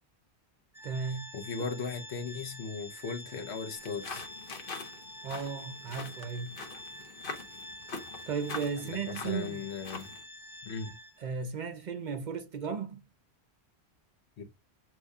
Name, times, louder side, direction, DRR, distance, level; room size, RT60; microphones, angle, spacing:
Organ, 0.7-11.4, left 1 dB, 5° right, 0.3 m, -47 dB
voice 1, 0.8-1.3 5.2-6.5 8.3-9.7 11.2-13.1, right 5 dB, 55° right, 0.6 m, -35 dB
voice 2, 1.3-4.3 8.8-10.1 10.6-10.9 14.4-14.5, left 5 dB, 80° left, 1.2 m, -37 dB
sound 1, 3.8-10.2, left 4 dB, 55° left, 1.0 m, -44 dB
6.6 x 3.0 x 2.3 m
omnidirectional pair, 1.1 m